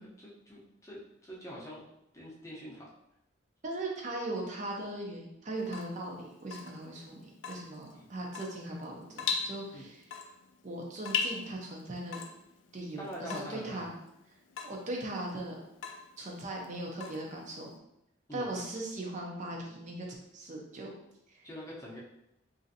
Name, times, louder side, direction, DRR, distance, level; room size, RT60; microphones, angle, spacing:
voice 1, 0.2-1.8 2.1-2.9 7.9-8.1 9.7-9.9 13.0-13.9 18.3-18.5 21.4-22.0, equal, 15° left, -6 dB, 0.7 m, -44 dB
voice 2, 3.6-10.0 10.6-12.2 12.7-13.9 14.6-15.6 16.2-17.7 18.3-20.1 20.3-20.9 21.3-21.5, right 1 dB, 40° right, -1 dB, 0.5 m, -39 dB
Water tap faucet / Drip, 5.6-17.8, left 6 dB, 85° left, 0.3 m, -40 dB
3.0 x 2.5 x 2.7 m, 0.82 s
head